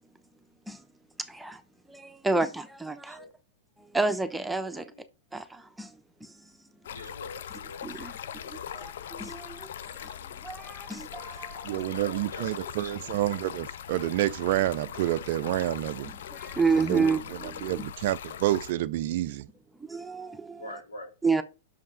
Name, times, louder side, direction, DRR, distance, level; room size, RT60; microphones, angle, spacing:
voice 1, 1.2-1.6 1.9-3.3 3.9-4.9 5.3-5.9 6.2-6.3 7.8-8.1 8.5-9.7 9.9-10.1 10.4-11.8 16.3-17.7 19.8-20.8 21.2-21.4, right 4 dB, 5° right, 0.9 m, -30 dB
voice 2, 4.6-5.0 6.9-7.9 8.4-9.1 11.8-13.1 20.6-21.4, left 2 dB, 85° left, 3.4 m, -45 dB
Stream, 6.8-18.7, left 9 dB, 65° left, 0.5 m, -41 dB
voice 3, 11.6-16.2 16.8-19.5, right 15 dB, 55° right, 0.3 m, -29 dB
6.4 x 5.3 x 6.2 m
figure-of-eight pair, 100°, 0 cm